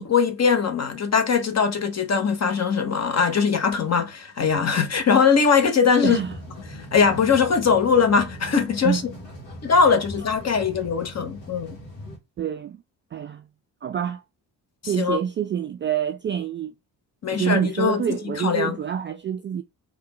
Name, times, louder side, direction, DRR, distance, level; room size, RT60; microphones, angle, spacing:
voice 1, 0.0-6.2 6.9-9.0 9.6-11.8 15.0-15.2 17.2-18.0 18.4-18.8, left 6 dB, 35° left, 0.9 m, -21 dB
sound 1, 6.0-12.2, equal, 85° left, 1.1 m, -40 dB
voice 2, 6.0-6.3 8.8-9.0 12.4-12.8 13.1-13.5 13.8-14.2 14.9-16.7 17.3-19.6, right 9 dB, 25° right, 0.3 m, -26 dB
3.4 x 2.4 x 3.0 m
hypercardioid pair, 40°, 48 cm